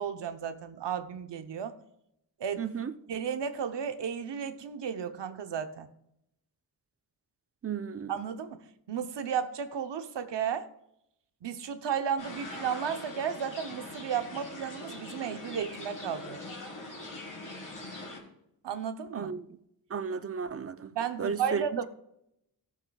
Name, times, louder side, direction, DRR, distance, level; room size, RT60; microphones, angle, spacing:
voice 1, 0.0-1.8 2.4-2.6 3.1-5.9 8.1-10.7 11.4-16.4 18.6-19.3 20.9-21.8, right 7 dB, 85° right, 0.8 m, -33 dB
voice 2, 2.6-2.9 7.6-8.3 19.1-19.4 19.9-20.9 21.2-21.6, right 6 dB, 35° right, 0.6 m, -34 dB
sound 1, 12.2-18.2, left 2 dB, 50° left, 3.5 m, -42 dB
17.0 x 7.3 x 2.3 m
wide cardioid pair, 105°, 42 cm